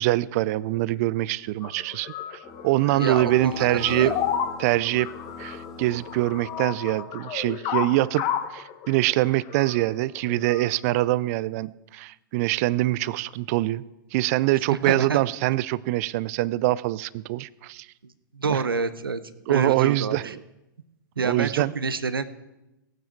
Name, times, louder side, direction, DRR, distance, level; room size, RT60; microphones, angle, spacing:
voice 1, 0.0-2.4 2.6-4.1 4.6-5.1 5.4-8.2 8.5-13.8 14.1-17.9 18.5-18.6 19.5-20.4 21.2-21.7, right 17 dB, 45° right, 20 dB, 0.4 m, -24 dB
sound 1, 1.6-10.7, left 9 dB, 40° left, 1.3 m, -32 dB
sound 2, 2.4-7.1, left 3 dB, ahead, 2.4 m, -43 dB
voice 2, 2.9-4.2 14.7-15.2 18.3-19.2 19.5-20.3 21.2-22.2, right 4 dB, 85° right, 13 dB, 0.8 m, -27 dB
17.0 x 9.2 x 4.6 m, 0.96 s
hypercardioid pair, 110°, 12 cm